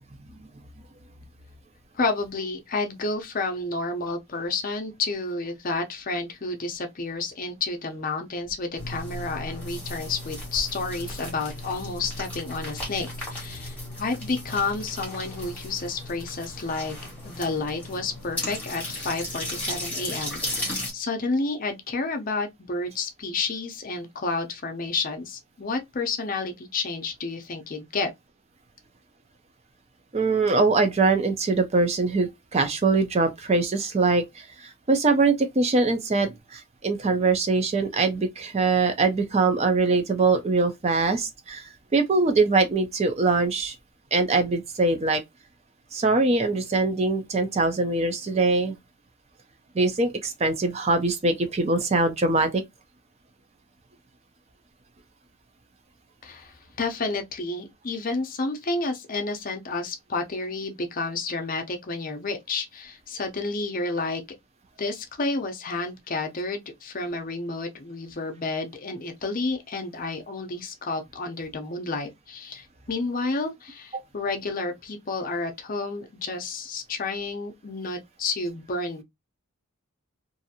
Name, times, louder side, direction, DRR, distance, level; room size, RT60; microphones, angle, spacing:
voice 1, 1.9-16.9 17.2-28.1 56.2-64.2 64.8-79.0, left 3 dB, 40° left, 0.6 m, -30 dB
sound 1, 8.8-20.9, left 1 dB, 5° left, 1.4 m, -35 dB
voice 2, 30.1-43.8 44.1-45.2 45.9-48.7 49.8-52.6 73.9-74.0, right 3 dB, 30° right, 0.4 m, -23 dB
2.6 x 2.4 x 2.7 m
head